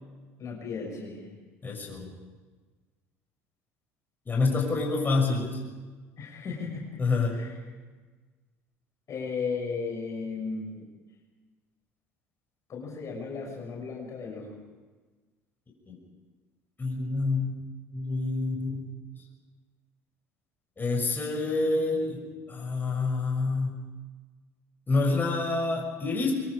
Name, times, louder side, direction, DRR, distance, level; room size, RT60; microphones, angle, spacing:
voice 1, 0.4-1.3 6.2-7.0 7.3-7.5 9.1-10.9 12.7-14.6, left 5 dB, 45° left, -1 dB, 6.3 m, -35 dB
voice 2, 1.6-2.1 4.3-5.5 7.0-7.3 15.9-16.0 16.8-17.5 17.9-18.9 20.8-22.2 22.5-23.8 24.9-26.3, left 3 dB, 25° left, 0 dB, 6.5 m, -27 dB
24.5 x 24.0 x 5.0 m, 1.3 s
hypercardioid pair, 70°, 8 cm